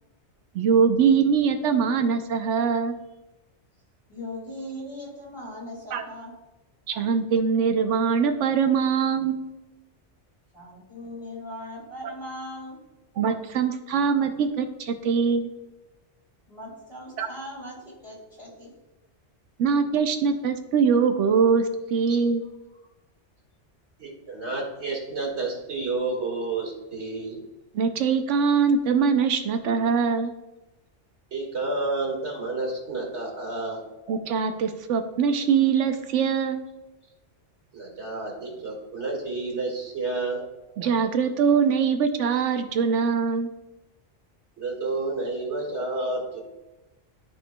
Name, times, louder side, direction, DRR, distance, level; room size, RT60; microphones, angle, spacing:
voice 1, 0.5-2.9 5.9-6.0 6.9-9.4 12.0-12.1 13.2-15.5 17.2-17.3 19.6-22.4 27.7-30.3 34.1-36.6 40.8-43.5, right 6 dB, 90° right, 7 dB, 1.0 m, -22 dB
voice 2, 4.1-6.3 10.5-12.8 16.5-18.7, left 1 dB, 25° left, -5 dB, 2.5 m, -39 dB
voice 3, 24.0-27.4 31.3-33.8 37.7-40.4 44.6-46.4, right 3 dB, 70° right, -1 dB, 2.2 m, -30 dB
13.0 x 4.6 x 2.2 m, 1.0 s
omnidirectional pair, 1.2 m